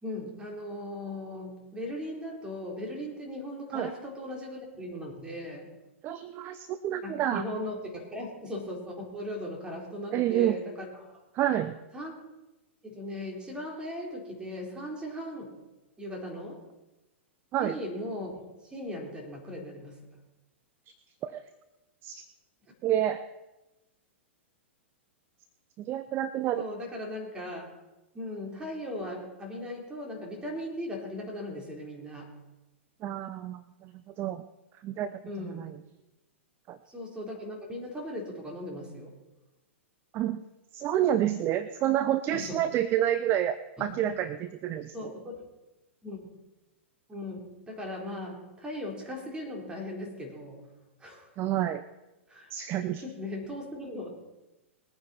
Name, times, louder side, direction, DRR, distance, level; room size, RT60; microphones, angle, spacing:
voice 1, 0.0-5.7 7.0-11.1 11.9-12.1 12.8-15.6 16.0-16.6 17.5-20.2 26.5-27.7 28.1-32.4 35.3-35.7 36.9-39.1 42.3-42.6 43.8-44.2 44.9-45.4 46.0-46.3 47.1-47.4 47.7-50.7 51.0-51.3 52.3-52.5 53.0-54.1, left 1 dB, 15° right, 0 dB, 4.3 m, -38 dB
voice 2, 6.0-7.4 10.1-10.6 11.3-11.8 17.5-17.8 21.2-21.4 22.0-22.2 22.8-23.2 25.8-26.6 33.0-33.9 34.2-34.4 34.8-35.2 35.5-35.7 36.7-36.8 40.1-40.4 40.7-45.1 51.4-51.8 52.5-53.0, right 11 dB, 35° right, 12 dB, 0.7 m, -29 dB
20.5 x 9.4 x 4.5 m, 1.0 s
hypercardioid pair, 110°, 7 cm